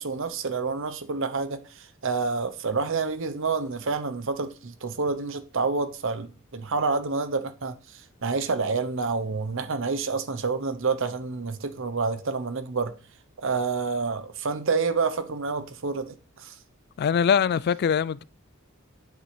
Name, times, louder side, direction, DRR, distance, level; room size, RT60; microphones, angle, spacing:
voice 1, 0.0-12.9 13.4-16.5, right 4 dB, 65° right, 0.9 m, -28 dB
voice 2, 17.0-18.2, left 7 dB, 50° left, 0.3 m, -22 dB
8.6 x 8.3 x 3.3 m
head